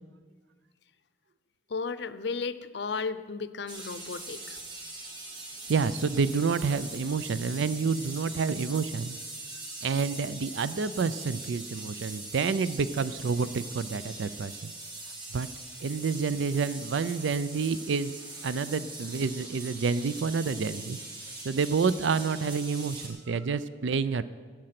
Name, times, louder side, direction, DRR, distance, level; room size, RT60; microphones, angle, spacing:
voice 1, 1.7-4.6, left 4 dB, 65° left, 14 dB, 0.5 m, -34 dB
sound 1, 3.7-23.1, right 2 dB, 25° right, 2.2 m, -42 dB
voice 2, 5.7-9.2 9.8-14.7 15.3-15.5 15.8-21.0 21.4-24.2, right 5 dB, 85° right, 15 dB, 0.5 m, -29 dB
14.0 x 8.8 x 5.9 m, 1.5 s
head